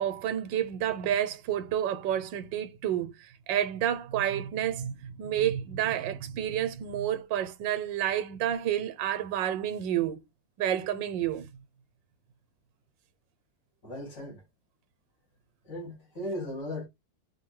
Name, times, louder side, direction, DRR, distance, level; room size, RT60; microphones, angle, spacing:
voice 1, 0.0-10.2 10.6-11.5, right 10 dB, 85° right, 1.4 m, -30 dB
voice 2, 13.8-14.4 15.6-16.9, left 1 dB, 65° left, 3.5 m, -37 dB
6.1 x 2.6 x 3.1 m
omnidirectional pair, 2.0 m